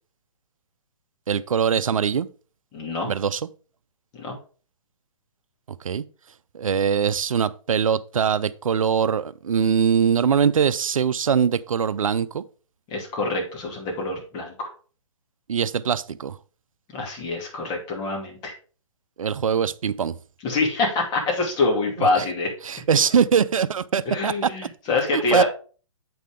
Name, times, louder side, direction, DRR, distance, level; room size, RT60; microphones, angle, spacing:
voice 1, 1.3-2.3 3.0-3.4 5.8-6.0 6.5-12.4 15.5-16.4 19.2-20.1 22.0-22.1 22.6-24.5 25.1-25.4, right 7 dB, 90° right, 0.5 m, -22 dB
voice 2, 2.7-3.1 4.1-4.4 12.9-14.7 16.9-18.5 20.4-22.5 24.1-25.4, left 3 dB, 25° left, 2.5 m, -25 dB
7.6 x 5.6 x 3.7 m
hypercardioid pair, 145°, 17 cm